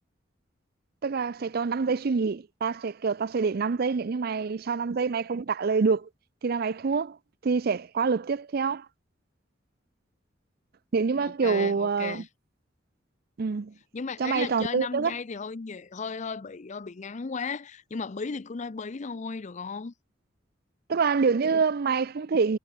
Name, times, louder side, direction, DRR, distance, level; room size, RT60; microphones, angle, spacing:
voice 1, 1.0-6.1 6.4-7.2 7.4-8.9 10.9-12.2 13.4-13.7 14.2-15.2 20.9-22.6, right 5 dB, 55° right, 0.5 m, -26 dB
voice 2, 11.2-12.3 13.9-19.9, left 4 dB, 40° left, 0.5 m, -35 dB
head